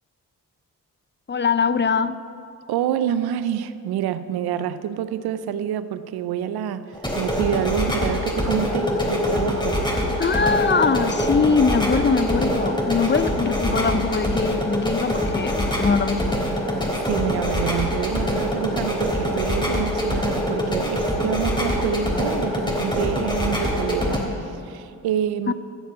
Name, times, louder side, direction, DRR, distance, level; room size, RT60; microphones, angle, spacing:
voice 1, 1.3-2.2 10.2-16.4 25.5-25.6, left 5 dB, 30° left, 14 dB, 0.6 m, -22 dB
voice 2, 2.7-6.8 7.1-9.8 13.0-13.1 16.2-16.6 17.1-25.5, right 10 dB, 85° right, 13 dB, 0.6 m, -27 dB
sound 1, 6.9-24.2, left 1 dB, 10° left, 3.2 m, -24 dB
13.5 x 6.8 x 8.0 m, 2.5 s
supercardioid pair, 45°, 36 cm